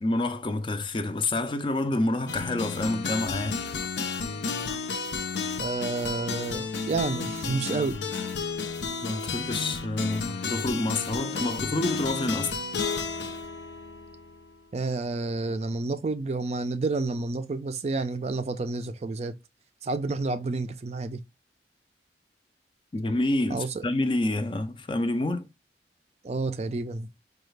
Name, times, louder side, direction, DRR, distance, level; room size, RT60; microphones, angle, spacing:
voice 1, 0.0-3.6 9.0-12.6 22.9-25.5, left 2 dB, 30° left, 0.4 m, -28 dB
sound 1, 2.3-14.5, left 4 dB, 80° left, 0.6 m, -32 dB
voice 2, 5.6-8.0 14.7-19.3 19.8-21.2 23.5-23.8 26.2-27.1, right 3 dB, 35° right, 0.4 m, -30 dB
4.8 x 2.3 x 3.2 m
head